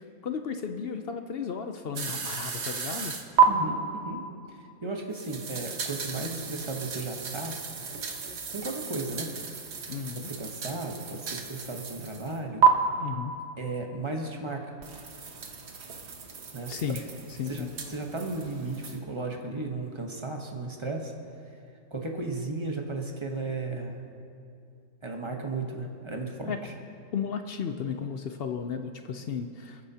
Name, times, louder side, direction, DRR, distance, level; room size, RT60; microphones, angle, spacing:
voice 1, 0.0-3.1 9.9-10.3 12.9-13.3 16.7-17.0 17.4-17.7 26.4-26.6 27.1-29.8, left 7 dB, 60° left, 7 dB, 0.6 m, -34 dB
sound 1, 2.0-3.4 5.1-12.4 12.6-12.7 14.8-19.0, right 9 dB, 55° right, 1.1 m, -31 dB
voice 2, 3.5-4.2 4.8-7.6 8.5-9.3 10.1-12.7 13.6-14.7 16.5-17.0 17.5-21.1 21.9-24.0 25.0-26.7, right 3 dB, 25° right, 2 dB, 0.9 m, -35 dB
28.0 x 9.6 x 2.8 m, 2.4 s
omnidirectional pair, 1.5 m